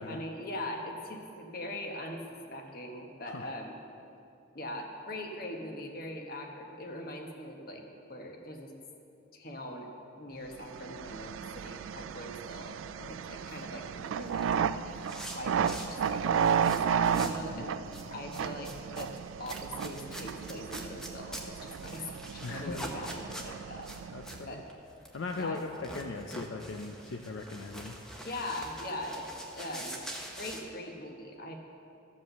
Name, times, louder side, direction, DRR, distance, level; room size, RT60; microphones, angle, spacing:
voice 1, 0.0-2.2 2.5-3.8 4.5-7.8 8.1-8.7 9.3-14.5 15.3-17.8 18.1-19.1 19.4-23.9 24.5-24.7 25.4-25.6 28.2-30.0 30.4-31.6, left 1 dB, 50° left, 2 dB, 1.2 m, -41 dB
sound 1, 10.6-24.5, right 7 dB, 85° right, 0.3 m, -33 dB
sound 2, 13.2-17.5 17.8-30.6, equal, 5° left, 0.8 m, -45 dB
voice 2, 17.2-18.0 22.4-22.9 24.1-24.6 25.1-28.0, left 3 dB, 75° left, 4 dB, 0.5 m, -39 dB
13.5 x 5.3 x 6.7 m, 2.7 s
head